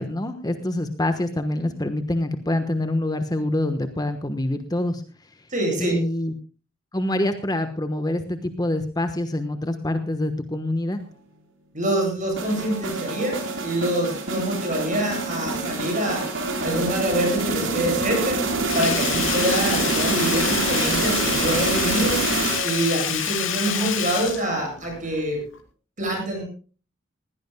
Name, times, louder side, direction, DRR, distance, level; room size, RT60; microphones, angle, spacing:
voice 1, 0.0-5.5 5.8-6.3 6.9-11.0 23.8-23.9, left 1 dB, 20° left, 8 dB, 1.2 m, -26 dB
voice 2, 5.5-6.0 11.7-16.3 16.6-18.4 18.7-22.2 22.6-25.4 26.0-26.4, right 1 dB, 40° right, 2 dB, 8.0 m, -25 dB
sound 1, 12.4-23.0, right 3 dB, 75° right, 4.0 m, -26 dB
Sink (filling or washing), 18.7-25.2 25.5-25.6, left 8 dB, 80° left, 3.0 m, -27 dB
20.5 x 16.5 x 2.2 m, 0.36 s
head